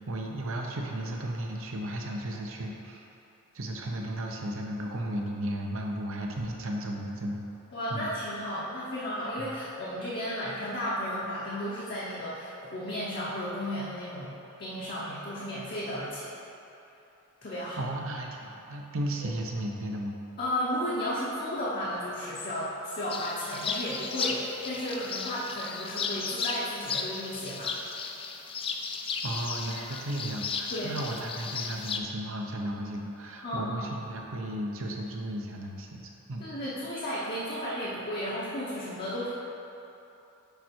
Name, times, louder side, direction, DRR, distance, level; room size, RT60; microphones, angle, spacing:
voice 1, 0.1-3.0 3.5-7.4 7.9-8.1 9.4-9.5 17.8-20.2 29.2-36.4, right 1 dB, 65° right, 0 dB, 0.8 m, -34 dB
voice 2, 7.7-14.3 14.6-16.3 17.4-17.8 19.2-19.3 20.4-27.8 30.7-31.0 33.4-33.8 36.4-39.3, equal, 45° left, -7 dB, 0.9 m, -34 dB
sound 1, 23.1-32.0, left 5 dB, 25° left, 0.3 m, -35 dB
6.9 x 4.6 x 4.5 m, 3.0 s
head